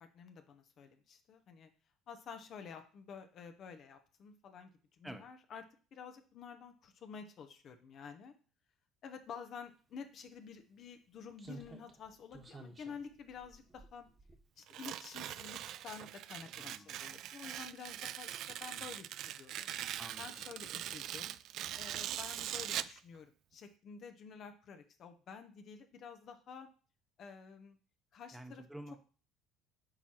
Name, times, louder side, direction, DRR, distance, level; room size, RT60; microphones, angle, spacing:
voice 1, 0.0-1.7 2.1-4.7 5.0-5.6 5.9-8.3 9.0-14.1 14.6-19.1 19.4-19.7 20.2-21.3 21.8-26.7 27.2-27.8 28.1-28.6, left 6 dB, 55° left, 7 dB, 0.9 m, -50 dB
Slam, 10.0-10.1 11.4-14.9 15.2-15.4, right 3 dB, 30° right, 1.4 m, -54 dB
Tearing, 14.7-23.0, right 12 dB, 60° right, 0.3 m, -42 dB
voice 2, 16.6-17.0 20.0-20.5 28.3-29.0, right 1 dB, 5° right, 7 dB, 1.0 m, -49 dB
8.7 x 4.6 x 3.0 m, 0.38 s
hypercardioid pair, 65°, 0 cm